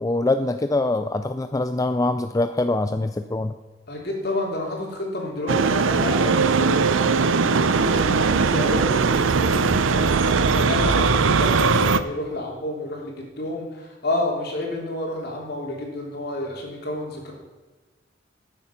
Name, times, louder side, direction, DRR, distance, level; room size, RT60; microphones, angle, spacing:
voice 1, 0.0-3.6, left 2 dB, 20° left, 9 dB, 0.4 m, -23 dB
voice 2, 3.9-17.3, left 1 dB, 55° left, -1 dB, 3.3 m, -30 dB
sound 1, 5.5-12.0, right 4 dB, 90° right, 0.6 m, -20 dB
13.0 x 8.9 x 5.7 m, 1.2 s
head